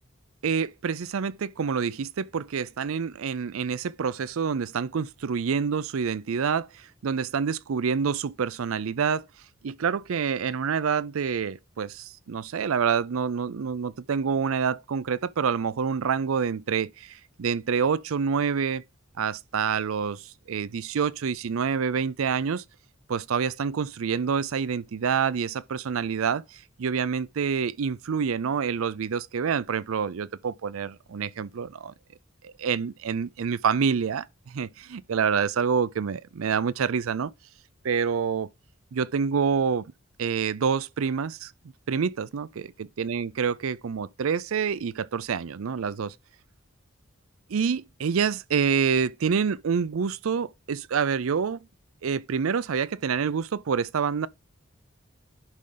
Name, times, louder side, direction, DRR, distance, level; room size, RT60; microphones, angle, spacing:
voice 1, 0.4-9.3 9.6-18.8 19.2-22.6 23.1-31.9 32.6-37.3 37.8-38.5 38.9-39.9 40.2-41.5 41.9-46.1 47.5-51.6 52.0-54.3, right 6 dB, 80° right, 0.5 m, -27 dB
10.5 x 4.8 x 3.9 m
head